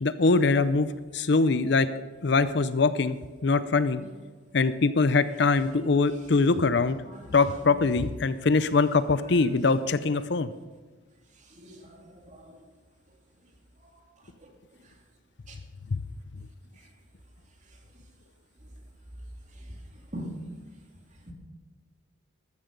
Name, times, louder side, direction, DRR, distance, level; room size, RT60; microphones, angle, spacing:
voice 1, 0.0-1.9 2.2-3.2 3.4-4.0 4.5-7.0 7.3-10.5 15.9-16.0, left 4 dB, 60° left, 0.5 m, -23 dB
voice 2, 7.0-7.3 11.5-12.6 15.5-15.6 20.1-20.4 21.3-21.4, equal, 35° right, 2.6 m, -41 dB
14.0 x 13.5 x 5.2 m
head